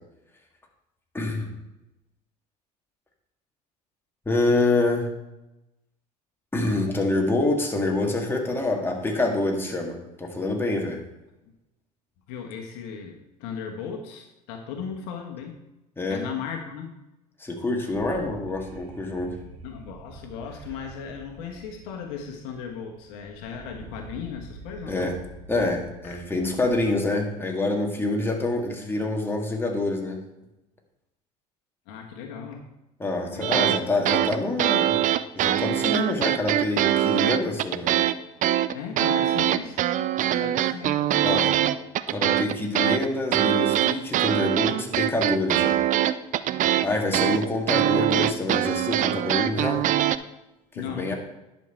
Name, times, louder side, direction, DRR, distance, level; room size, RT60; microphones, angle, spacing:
voice 1, 1.1-1.5 4.3-5.1 6.5-11.0 16.0-16.2 17.4-19.3 24.9-25.2 25.5-30.2 33.0-35.0 35.3-38.0 41.2-41.5 42.1-45.8 46.8-49.8 50.7-51.1, left 2 dB, 10° left, 0 dB, 2.1 m, -26 dB
voice 2, 12.3-15.6 16.1-16.9 19.6-25.1 26.0-26.2 31.9-32.7 33.3-33.8 38.7-39.8 40.1-41.3 50.7-51.1, left 7 dB, 60° left, 2 dB, 1.3 m, -36 dB
sound 1, 17.9-26.8, right 3 dB, 65° right, 1.7 m, -47 dB
sound 2, 33.4-33.8 34.1-38.2 38.4-50.2, right 12 dB, 40° right, 0.5 m, -23 dB
10.5 x 5.8 x 4.5 m, 0.94 s
hypercardioid pair, 75°, 20 cm